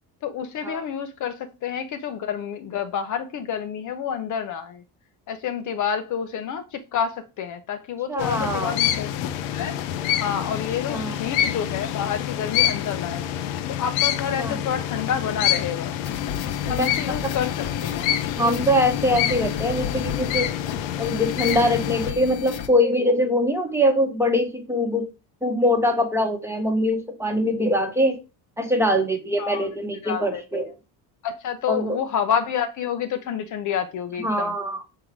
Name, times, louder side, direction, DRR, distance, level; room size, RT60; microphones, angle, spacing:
voice 1, 0.2-4.8 5.3-9.1 9.5-9.8 10.2-13.2 13.7-16.0 16.7-18.1 29.4-29.7 30.0-30.4 31.2-34.5, left 8 dB, 45° left, 0.6 m, -29 dB
voice 2, 8.1-8.7 10.9-11.2 14.4-14.6 16.7-16.9 18.4-20.5 21.0-25.1 25.4-28.2 28.6-30.7 31.7-32.0 34.2-34.8, equal, 5° right, 1.0 m, -23 dB
sound 1, 8.2-22.1, left 11 dB, 85° left, 0.9 m, -27 dB
sound 2, 16.0-22.7, left 9 dB, 65° left, 1.0 m, -33 dB
6.4 x 4.0 x 4.5 m
cardioid pair, 150°, 43 cm